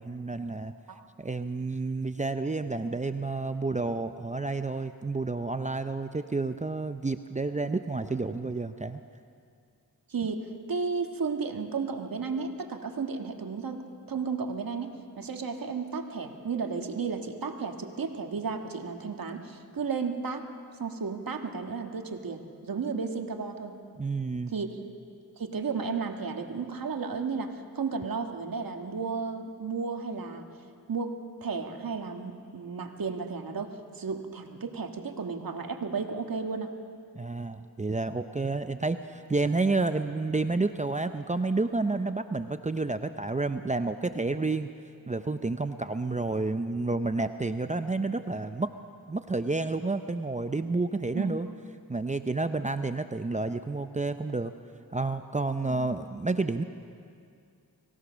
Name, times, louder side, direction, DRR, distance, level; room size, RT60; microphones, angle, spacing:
voice 1, 0.0-0.7 1.2-9.0 24.0-24.5 37.2-44.7 45.1-48.7 49.1-51.5 51.9-54.5 54.9-56.6, right 3 dB, 20° right, 9 dB, 0.6 m, -30 dB
voice 2, 10.1-13.8 14.1-20.5 20.7-23.8 24.5-24.8 25.4-30.5 30.9-36.7 51.1-51.4, right 5 dB, 70° right, 5 dB, 1.7 m, -33 dB
25.5 x 16.5 x 6.3 m, 2.3 s
cardioid pair, 55°, 36 cm